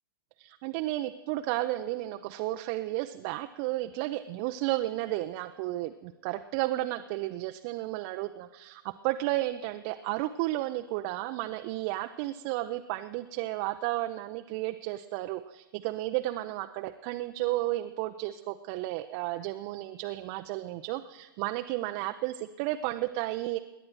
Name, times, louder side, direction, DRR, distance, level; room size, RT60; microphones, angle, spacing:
voice 1, 0.4-23.6, right 16 dB, 35° right, 7 dB, 0.6 m, -33 dB
26.5 x 11.0 x 4.6 m, 1.1 s
figure-of-eight pair, 105°, 12 cm